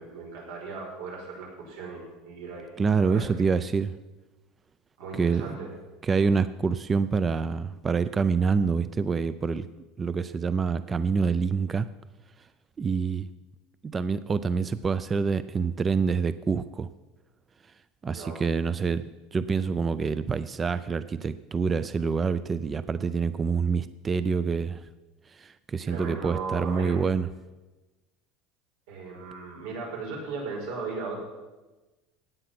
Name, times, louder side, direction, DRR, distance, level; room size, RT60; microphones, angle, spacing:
voice 1, 0.0-2.7 3.0-3.6 5.0-5.7 18.1-18.4 25.9-27.0 28.9-31.2, right 4 dB, 90° right, -1 dB, 5.7 m, -37 dB
voice 2, 2.8-4.0 5.1-5.6 6.0-9.7 10.0-11.9 12.8-13.3 13.8-16.9 18.0-24.9 25.3-27.3, right 5 dB, 15° right, 14 dB, 0.4 m, -26 dB
16.5 x 9.3 x 5.9 m, 1.1 s
cardioid pair, 165°, 0 cm